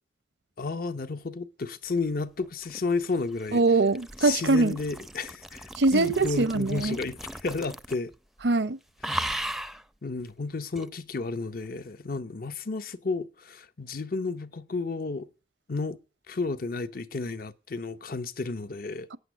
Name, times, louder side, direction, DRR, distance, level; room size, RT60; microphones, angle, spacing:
voice 1, 0.6-3.6 4.2-8.1 9.1-9.3 10.0-15.3 15.7-16.0 16.3-19.1, left 3 dB, 55° left, 0.7 m, -32 dB
sound 1, 2.4-8.1 8.4-8.7 9.0-9.8 10.8-10.9, right 1 dB, ahead, 0.5 m, -37 dB
voice 2, 3.5-4.8 5.8-7.0 8.4-8.8 19.1-19.2, right 3 dB, 80° right, 0.8 m, -23 dB
9.0 x 8.1 x 9.3 m
head